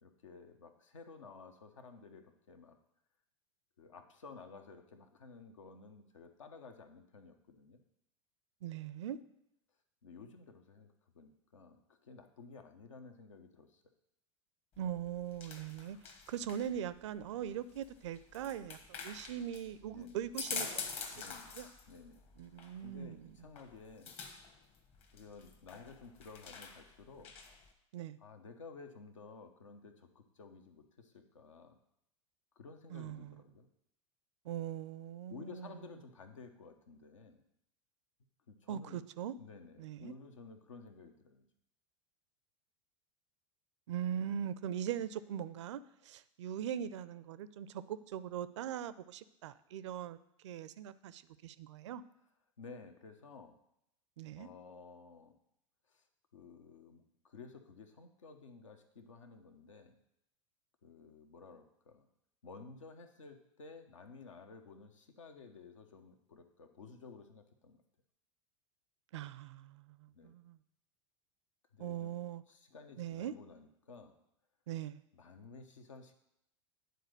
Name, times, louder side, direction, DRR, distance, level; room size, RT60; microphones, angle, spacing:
voice 1, 0.0-2.8 3.8-7.8 10.0-13.8 19.9-20.2 21.1-21.5 21.9-22.2 22.8-24.2 25.1-27.3 28.2-31.8 32.5-33.7 35.3-37.4 38.5-39.0 39.4-41.5 52.6-53.6 54.3-55.3 55.9-56.0 56.3-60.0 60.8-62.1 62.4-67.8 70.1-70.4 71.7-72.1 72.5-74.1 75.1-76.1, left 4 dB, 75° left, 6 dB, 1.0 m, -54 dB
voice 2, 8.6-9.2 14.8-16.0 16.3-21.3 21.5-21.7 22.4-23.3 27.9-28.2 32.9-33.4 34.4-35.7 38.7-39.4 39.8-40.1 43.9-50.2 50.4-52.0 54.2-54.5 69.1-70.6 71.8-72.4 73.0-73.3 74.7-75.0, right 10 dB, 65° right, 16 dB, 0.4 m, -41 dB
sound 1, 14.7-27.7, left 5 dB, 40° left, 1.3 m, -47 dB
9.3 x 4.0 x 6.5 m, 0.78 s
figure-of-eight pair, 85°, 16 cm